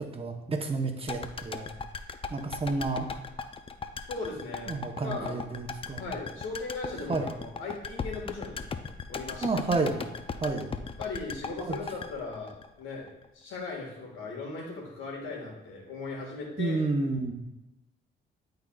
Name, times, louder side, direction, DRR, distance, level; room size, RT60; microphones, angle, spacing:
voice 1, 0.0-1.7 2.3-3.1 4.7-6.0 7.1-7.2 9.4-10.0 10.4-10.7 11.6-11.8 16.6-17.3, right 3 dB, 30° right, 3 dB, 0.9 m, -30 dB
sound 1, 1.1-13.3 13.5-13.6, left 5 dB, 30° left, 0.4 m, -38 dB
voice 2, 4.1-4.7 5.0-5.4 6.0-8.7 9.1-9.5 11.0-13.1 13.3-16.8, left 3 dB, 90° left, -2 dB, 1.8 m, -38 dB
10.5 x 3.9 x 2.4 m, 0.99 s
cardioid pair, 90°, 20 cm